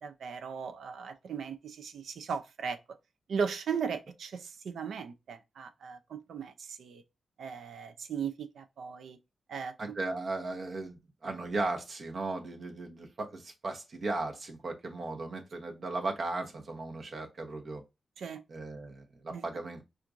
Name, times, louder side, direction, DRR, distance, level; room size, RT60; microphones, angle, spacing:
voice 1, 0.0-2.8 3.3-7.0 7.4-9.2 9.5-9.7 18.2-18.4 19.3-19.4, right 6 dB, 85° right, 0.4 m, -37 dB
voice 2, 9.8-17.8 18.5-19.8, right 2 dB, 60° right, 0.9 m, -36 dB
4.4 x 2.5 x 2.5 m
cardioid pair, 70°, 0 cm